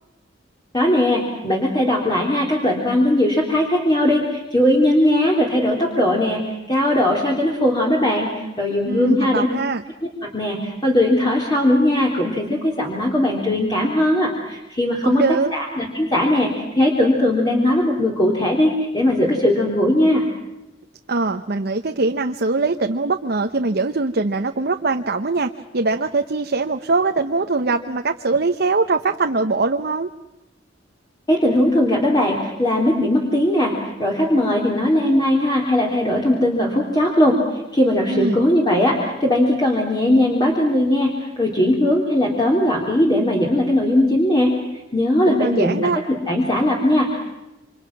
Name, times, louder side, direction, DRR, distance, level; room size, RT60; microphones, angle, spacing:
voice 1, 0.7-9.5 10.0-15.2 15.5-20.2 31.3-37.4 37.7-44.5 44.9-46.0 46.3-47.2, left 1 dB, 25° left, -2 dB, 3.7 m, -19 dB
voice 2, 8.8-9.8 15.0-15.5 21.1-30.1 38.1-38.4 45.2-46.0, right 3 dB, 60° right, 5 dB, 1.0 m, -22 dB
28.5 x 26.0 x 6.1 m, 0.95 s
head